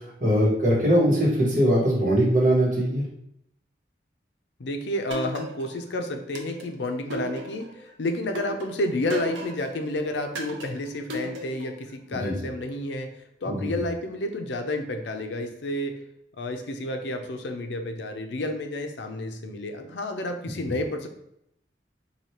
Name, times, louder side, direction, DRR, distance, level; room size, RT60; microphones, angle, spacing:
voice 1, 0.2-3.0 12.2-12.3 13.4-13.7, equal, 45° right, -6 dB, 1.5 m, -21 dB
voice 2, 4.6-16.0 16.4-21.1, left 1 dB, 75° left, 6 dB, 0.5 m, -30 dB
sound 1, 5.1-5.9 6.4-7.8 8.4-9.8 10.4-11.8, right 2 dB, 85° right, 0.6 m, -36 dB
4.9 x 2.7 x 2.9 m, 0.77 s
head